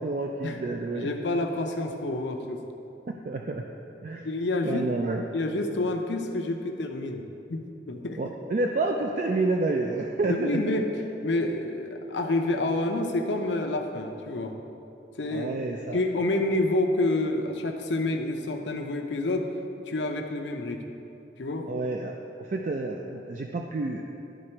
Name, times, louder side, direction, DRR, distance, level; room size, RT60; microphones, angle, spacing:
voice 1, 0.0-1.1 3.1-3.6 4.0-4.3 4.7-5.2 8.2-10.6 15.3-16.0 21.7-24.0, right 2 dB, 45° right, 1 dB, 0.3 m, -29 dB
voice 2, 0.9-2.6 4.2-4.9 5.3-7.2 7.5-8.3 10.2-10.9 11.2-14.5 15.2-15.6 15.9-19.5 19.9-20.8 21.4-21.7, left 2 dB, 80° left, 3 dB, 0.7 m, -28 dB
11.0 x 3.8 x 4.4 m, 2.8 s
head